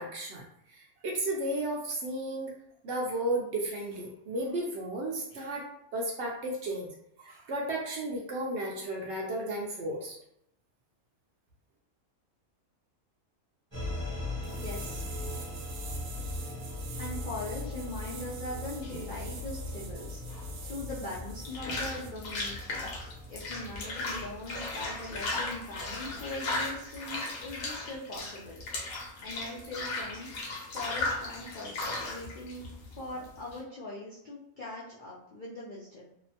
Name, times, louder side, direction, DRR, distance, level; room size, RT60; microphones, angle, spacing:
voice 1, 0.0-2.5 2.8-5.7 5.9-6.9 7.2-10.1, right 1 dB, 65° right, -1 dB, 0.7 m, -34 dB
sound 1, 13.7-26.7, left 2 dB, 25° right, 0.7 m, -40 dB
voice 2, 14.4-15.0 17.0-20.2 20.6-22.9 23.3-28.6 28.9-30.3 30.7-36.0, left 2 dB, 65° left, -7 dB, 0.5 m, -41 dB
sound 2, 14.4-21.6 22.0-22.1, right 5 dB, 85° right, 1.0 m, -47 dB
sound 3, 18.8-33.6, left 2 dB, 85° left, 1.2 m, -37 dB
2.8 x 2.1 x 2.7 m, 0.77 s
omnidirectional pair, 1.5 m